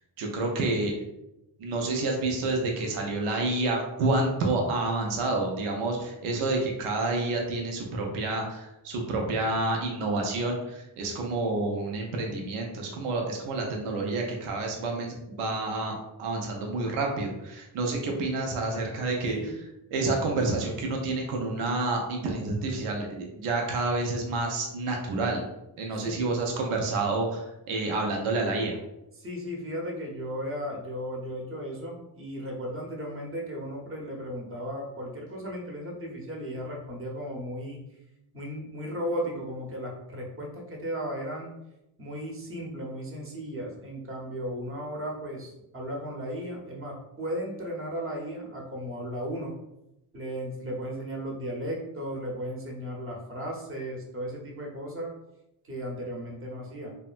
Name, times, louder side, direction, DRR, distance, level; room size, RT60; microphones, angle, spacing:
voice 1, 0.2-0.9 1.6-19.4 19.9-25.4 25.8-28.8, right 2 dB, 85° right, 1 dB, 0.6 m, -29 dB
voice 2, 25.9-26.5 29.2-37.8 38.3-41.5 42.0-49.6 50.1-55.1 55.6-57.0, equal, 25° right, 0 dB, 0.8 m, -35 dB
2.7 x 2.1 x 2.4 m, 0.90 s
supercardioid pair, 55°, 49 cm